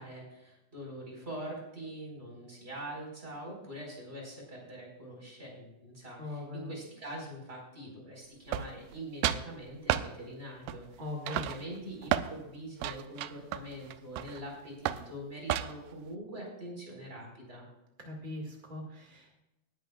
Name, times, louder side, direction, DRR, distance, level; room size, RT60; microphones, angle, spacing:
voice 1, 0.0-17.7, right 1 dB, 15° right, -2 dB, 4.4 m, -44 dB
voice 2, 6.2-6.7 11.0-11.4 18.0-19.4, left 2 dB, 45° right, 0 dB, 0.6 m, -40 dB
sound 1, 8.5-9.0 9.2-9.5 9.9-10.1 10.7-11.0 11.3-12.3 12.8-14.4 14.9-15.1 15.5-15.9, right 12 dB, 85° right, 1.9 m, -32 dB
19.0 x 10.5 x 2.3 m, 0.94 s
omnidirectional pair, 4.3 m